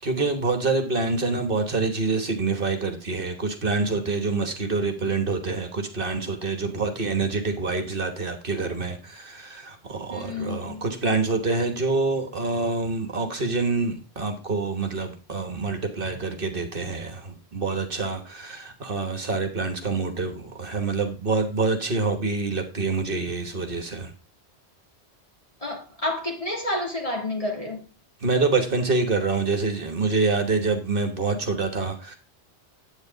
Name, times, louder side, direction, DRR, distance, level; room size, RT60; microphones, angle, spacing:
voice 1, 0.0-24.1 28.2-32.2, right 3 dB, 55° right, 1.4 m, -26 dB
voice 2, 10.1-10.8 25.6-27.8, left 2 dB, 35° left, 3.0 m, -30 dB
9.7 x 8.3 x 3.9 m
omnidirectional pair, 1.1 m